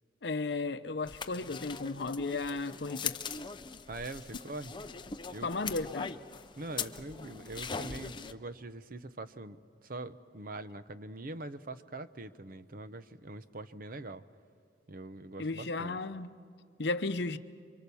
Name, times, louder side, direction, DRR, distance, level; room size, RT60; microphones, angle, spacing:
voice 1, 0.2-3.2 5.4-6.1 15.4-16.3 16.8-17.4, left 3 dB, 65° left, 0.8 m, -34 dB
sound 1, 1.1-8.3, left 6 dB, 25° left, 0.6 m, -41 dB
voice 2, 3.9-4.8 5.3-5.5 6.6-14.2 14.9-16.0, right 2 dB, 50° right, 0.8 m, -43 dB
28.0 x 25.0 x 7.0 m
head